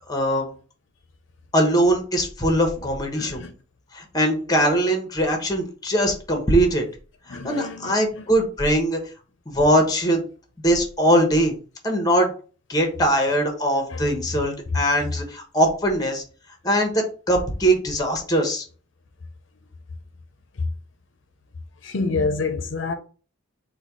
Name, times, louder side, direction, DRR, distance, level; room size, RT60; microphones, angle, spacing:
voice 1, 0.1-0.5 1.5-3.4 3.9-6.8 7.3-9.0 9.5-10.2 10.6-11.5 11.8-12.3 12.7-16.2 16.6-18.6, right 1 dB, 20° left, 1.0 m, -21 dB
voice 2, 3.2-3.5 7.3-8.2 13.9-14.1 21.8-22.9, left 3 dB, 70° left, 0.6 m, -28 dB
4.2 x 2.3 x 4.6 m
head